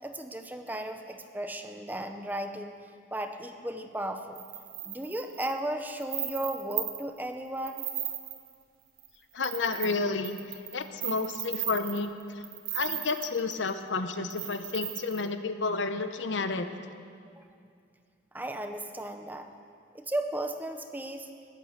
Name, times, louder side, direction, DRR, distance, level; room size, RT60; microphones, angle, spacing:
voice 1, 0.0-2.8 3.1-4.4 4.8-7.9 17.4-17.5 18.3-19.5 19.9-21.3, right 1 dB, 10° right, 6 dB, 0.8 m, -35 dB
sound 1, 4.4-7.2 7.6-8.5 9.0-9.1 9.4-13.7 14.3-15.3, right 11 dB, 50° right, 1.8 m, -36 dB
voice 2, 9.3-10.4 10.7-12.1 12.7-16.7, left 4 dB, 80° left, 9 dB, 0.8 m, -31 dB
21.0 x 8.5 x 6.5 m, 2.2 s
head